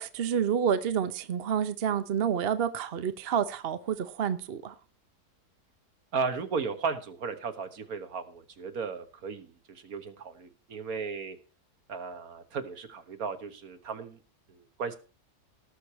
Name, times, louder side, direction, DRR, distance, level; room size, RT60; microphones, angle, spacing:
voice 1, 0.0-4.7, right 8 dB, 50° right, 0.9 m, -29 dB
voice 2, 6.1-11.4 11.9-14.2 14.5-15.0, right 5 dB, 65° right, 1.7 m, -35 dB
18.5 x 6.6 x 4.2 m
omnidirectional pair, 1.7 m